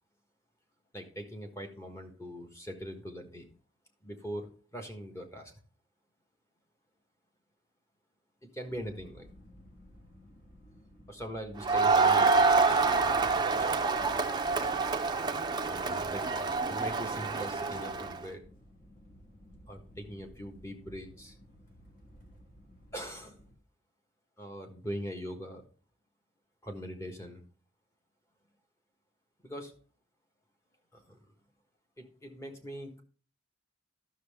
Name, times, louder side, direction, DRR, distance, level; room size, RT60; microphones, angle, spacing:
voice 1, 0.9-3.5 4.0-5.5 8.4-9.3 11.1-12.9 13.6-13.8 14.6-14.9 15.6-16.4 16.7-18.4 19.7-21.3 22.9-23.4 24.4-25.6 26.6-27.4 29.4-29.7 30.9-31.2 32.0-33.0, equal, 15° left, 4 dB, 1.4 m, -42 dB
sound 1, 8.7-23.5, equal, 40° left, 1.7 m, -55 dB
Crowd, 11.6-18.2, right 4 dB, 20° right, 0.6 m, -27 dB
12.0 x 6.4 x 3.5 m, 0.39 s
head